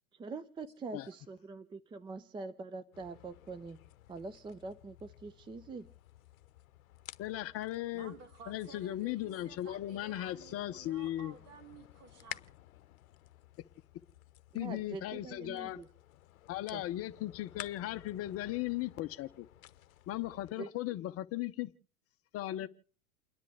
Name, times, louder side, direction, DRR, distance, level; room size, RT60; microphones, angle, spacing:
voice 1, 0.1-3.8 4.1-5.9 14.5-15.9 16.7-16.8 20.6-21.0, right 3 dB, 10° right, 0.6 m, -44 dB
sound 1, 2.9-20.5, left 14 dB, 70° left, 0.8 m, -54 dB
voice 2, 7.2-8.1 8.5-11.3 14.5-15.8 16.5-19.5 20.1-21.7 22.3-22.7, left 14 dB, 30° left, 0.8 m, -37 dB
voice 3, 7.9-12.5, right 5 dB, 60° right, 4.6 m, -54 dB
29.5 x 10.5 x 3.4 m
hypercardioid pair, 100°, 44 cm